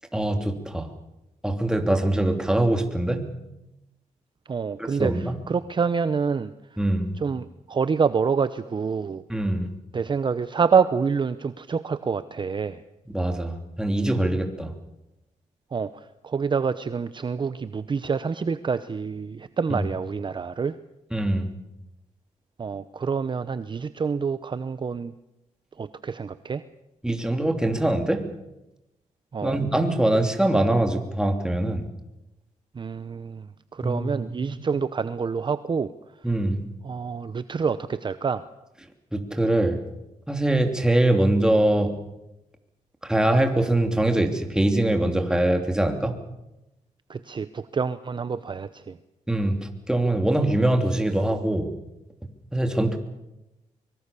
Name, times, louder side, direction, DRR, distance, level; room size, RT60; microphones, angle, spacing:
voice 1, 0.1-0.9 1.4-3.3 4.8-5.3 6.8-7.1 9.3-9.7 13.1-14.7 19.7-19.8 21.1-21.5 27.0-28.2 29.4-31.8 33.8-34.6 36.2-36.6 39.1-39.8 40.3-41.9 43.0-46.2 49.3-51.7 52.5-53.0, right 1 dB, 5° right, 5 dB, 3.0 m, -23 dB
voice 2, 4.5-6.8 7.2-9.2 9.9-12.8 15.7-20.8 22.6-25.1 25.8-26.6 29.3-29.6 32.7-35.9 36.8-38.5 47.1-49.0, right 5 dB, 35° right, 13 dB, 0.8 m, -27 dB
24.0 x 23.0 x 7.0 m, 0.94 s
cardioid pair, 100°, 13 cm